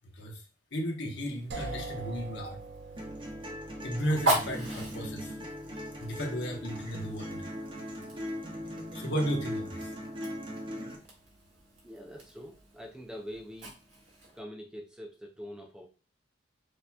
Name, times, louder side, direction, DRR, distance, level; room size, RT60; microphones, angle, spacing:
voice 1, 0.7-2.6 3.8-5.3 5.7-7.5 8.9-9.9, equal, 65° left, 1 dB, 1.0 m, -34 dB
Fire, 1.1-14.4, right 1 dB, 80° right, 1.9 m, -39 dB
sound 1, 1.5-11.3, right 3 dB, 55° right, 0.6 m, -47 dB
sound 2, 3.0-11.0, equal, 25° right, 0.8 m, -39 dB
voice 2, 11.8-13.7 14.3-15.9, equal, 5° right, 1 dB, 0.4 m, -44 dB
6.4 x 2.9 x 2.3 m, 0.35 s
head